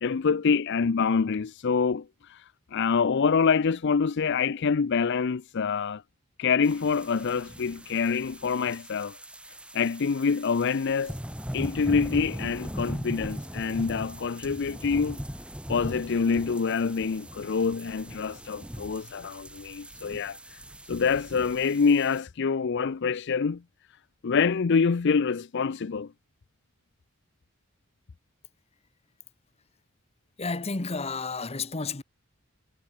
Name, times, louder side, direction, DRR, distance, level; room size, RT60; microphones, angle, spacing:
voice 1, 0.0-6.0 6.4-9.2 9.7-11.2 11.5-15.2 15.7-20.6 20.9-23.6 24.2-26.1, left 5 dB, 55° left, 0.5 m, -26 dB
sound 1, 6.6-22.2, equal, 5° right, 6.1 m, -39 dB
voice 2, 30.4-32.0, left 4 dB, 30° left, 1.1 m, -31 dB
head